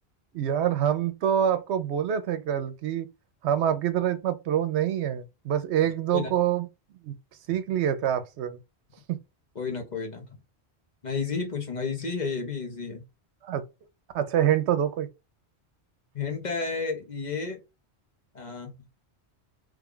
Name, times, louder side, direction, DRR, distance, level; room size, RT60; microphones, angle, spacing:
voice 1, 0.3-3.1 3.4-6.7 7.0-7.2 7.5-8.6 9.1-9.2 13.4-13.6 14.1-15.1, right 10 dB, 80° right, 0.9 m, -26 dB
voice 2, 9.5-10.4 11.0-13.0 16.1-17.6 18.3-18.7, left 5 dB, 45° left, 0.9 m, -31 dB
3.3 x 2.3 x 3.6 m
omnidirectional pair, 1.1 m